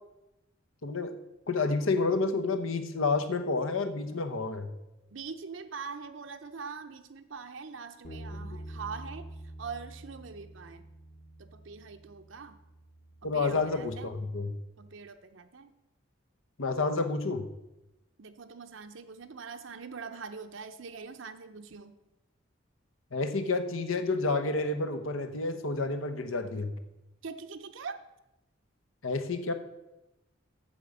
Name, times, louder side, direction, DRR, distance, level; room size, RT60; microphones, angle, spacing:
voice 1, 0.8-1.1 1.5-4.7 13.2-14.5 16.6-17.4 23.1-26.7 29.0-29.5, left 3 dB, 80° left, 8 dB, 1.0 m, -29 dB
voice 2, 5.1-9.3 9.6-10.9 11.4-12.6 13.3-14.1 14.8-15.7 18.2-22.0 27.2-28.0, right 5 dB, 70° right, 8 dB, 0.7 m, -43 dB
Bass guitar, 8.0-14.3, right 1 dB, 40° left, 1.1 m, -47 dB
8.6 x 7.2 x 6.6 m, 0.95 s
head